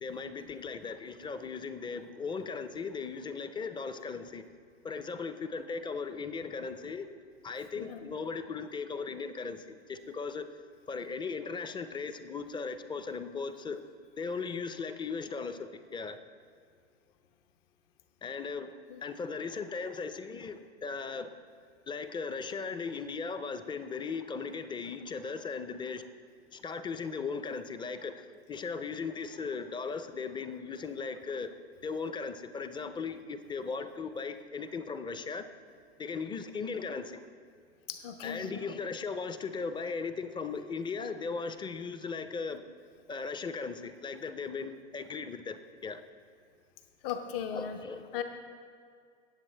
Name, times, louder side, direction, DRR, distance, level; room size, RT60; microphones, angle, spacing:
voice 1, 0.0-4.4 4.8-7.1 7.4-10.5 10.9-13.8 14.2-16.2 18.2-18.7 19.0-21.3 21.9-26.1 26.5-31.5 31.8-35.5 36.0-37.2 38.2-42.6 43.1-46.0 47.5-48.2, left 5 dB, 15° left, 10 dB, 0.5 m, -37 dB
voice 2, 7.8-8.1 18.9-19.0 37.9-38.6 47.0-47.8 48.1-48.2, left 8 dB, 60° left, 6 dB, 0.9 m, -37 dB
18.5 x 7.2 x 3.3 m, 2.2 s
hypercardioid pair, 105°, 33 cm